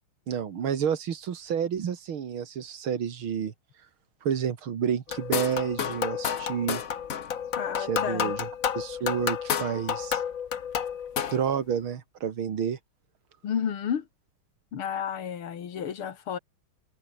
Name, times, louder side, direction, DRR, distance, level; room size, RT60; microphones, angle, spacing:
voice 1, 0.3-3.5 4.2-6.8 7.9-8.4 8.7-10.2 11.3-12.8, right 8 dB, 75° right, 2.6 m, -29 dB
sound 1, 5.1-11.5, left 8 dB, 45° left, 1.3 m, -30 dB
voice 2, 7.6-8.3 13.4-14.1 14.7-16.4, left 8 dB, 90° left, 2.7 m, -31 dB
omnidirectional pair, 2.3 m